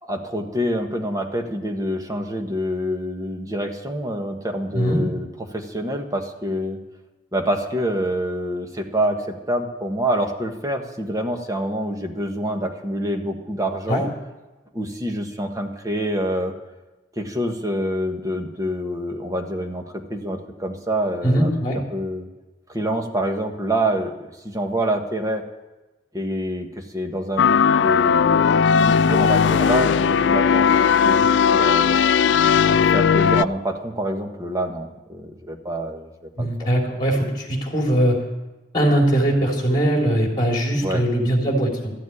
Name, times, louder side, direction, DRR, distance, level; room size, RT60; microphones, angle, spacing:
voice 1, 0.0-6.8 7.3-14.1 14.7-16.5 17.2-21.5 21.9-22.3 22.7-24.1 24.4-25.4 26.1-28.4 28.8-30.8 31.0-32.0 32.7-36.7 40.8-41.0, right 1 dB, 20° right, 3 dB, 1.4 m, -26 dB
voice 2, 21.2-21.8 36.4-38.2 38.7-41.9, right 1 dB, 25° left, 0 dB, 3.5 m, -20 dB
sound 1, 27.4-33.4, left 7 dB, 75° left, 0.3 m, -17 dB
14.0 x 7.3 x 9.9 m, 1.1 s
head